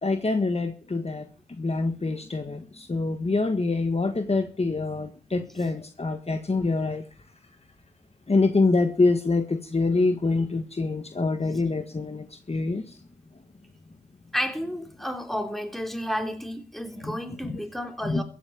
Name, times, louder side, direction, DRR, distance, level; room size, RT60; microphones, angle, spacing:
voice 1, 0.0-7.0 8.3-13.0 17.0-17.2 17.4-17.5 18.0-18.2, left 3 dB, 35° left, 1.6 m, -25 dB
voice 2, 14.3-18.2, equal, ahead, 3.5 m, -31 dB
15.5 x 8.8 x 7.4 m
cardioid pair, 50°, 18 cm